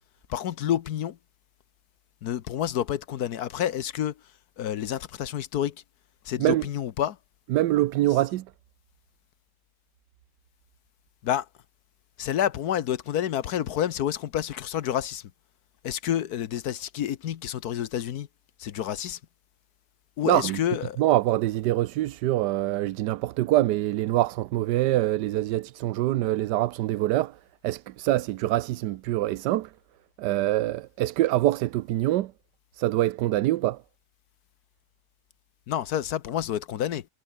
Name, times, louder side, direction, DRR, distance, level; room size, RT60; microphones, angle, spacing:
voice 1, 0.3-1.2 2.2-4.2 4.6-5.8 6.2-7.2 11.2-11.5 12.2-15.3 15.8-18.3 18.6-19.2 20.2-21.0 35.7-37.1, left 10 dB, 65° left, 1.3 m, -29 dB
voice 2, 7.5-8.5 20.3-20.6 21.0-27.4 27.6-29.7 30.2-32.3 32.7-33.8, right 15 dB, 85° right, 1.3 m, -24 dB
omnidirectional pair, 1.8 m